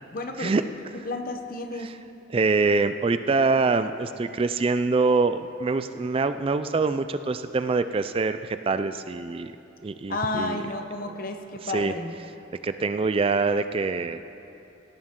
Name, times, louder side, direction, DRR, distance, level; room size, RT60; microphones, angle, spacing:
voice 1, 0.1-0.7 0.9-1.9 2.3-2.5 10.1-12.1, left 2 dB, 50° left, 5 dB, 1.0 m, -32 dB
voice 2, 2.3-9.5 9.8-10.6 11.1-11.2 11.6-11.9 12.6-14.2, right 4 dB, 30° right, 11 dB, 0.3 m, -25 dB
17.5 x 13.0 x 3.7 m, 2.9 s
head